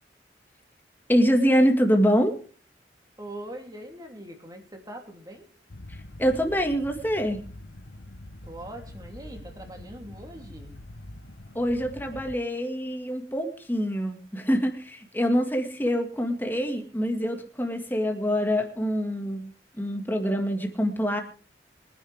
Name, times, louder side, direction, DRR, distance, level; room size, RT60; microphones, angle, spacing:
voice 1, 1.1-2.3 6.2-7.4 11.5-19.5 19.8-21.2, equal, 10° left, 4 dB, 2.0 m, -25 dB
voice 2, 3.2-5.5 8.4-10.7, right 1 dB, 20° right, 3 dB, 3.2 m, -42 dB
sound 1, 5.7-12.3, left 1 dB, 75° left, 1.1 m, -44 dB
23.5 x 10.5 x 3.6 m, 0.41 s
head